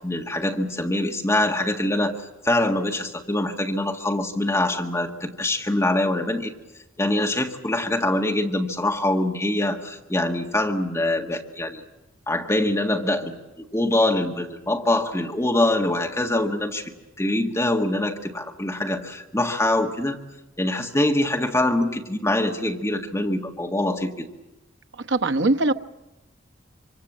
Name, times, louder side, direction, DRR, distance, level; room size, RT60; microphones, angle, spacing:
voice 1, 0.0-2.2 2.4-6.5 7.0-11.8 12.3-13.4 13.7-16.9 17.2-20.2 20.6-24.3, left 1 dB, 15° left, 3 dB, 1.7 m, -24 dB
voice 2, 24.9-25.7, right 2 dB, 65° right, 9 dB, 1.0 m, -21 dB
25.5 x 25.5 x 7.4 m, 1.0 s
head